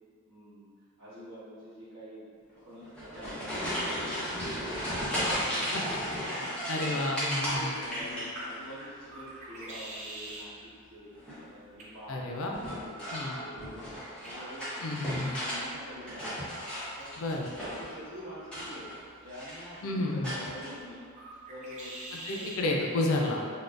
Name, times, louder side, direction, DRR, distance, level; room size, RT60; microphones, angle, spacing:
voice 1, 0.2-0.7 1.0-2.3 2.5-5.8 6.4-6.6 6.8-11.1 11.5-12.3 12.7-14.8 15.3-16.5 17.0-21.9 22.3-22.5 23.1-23.4, equal, 55° right, -12 dB, 1.2 m, -46 dB
sound 1, 2.8-8.8 9.1-9.7 11.1-11.5 12.5-15.6 15.9-18.0 18.4-19.0 19.3-19.8 20.2-20.7, equal, 5° left, 0.8 m, -35 dB
voice 2, 6.7-7.7 12.1-12.6 13.1-13.3 14.8-15.4 17.2-17.5 19.8-20.3 22.2-23.4, left 2 dB, 70° left, -1 dB, 0.4 m, -30 dB
sound 2, 8.1-22.6, right 1 dB, 30° right, 0.4 m, -49 dB
3.6 x 2.2 x 2.4 m, 2.1 s
head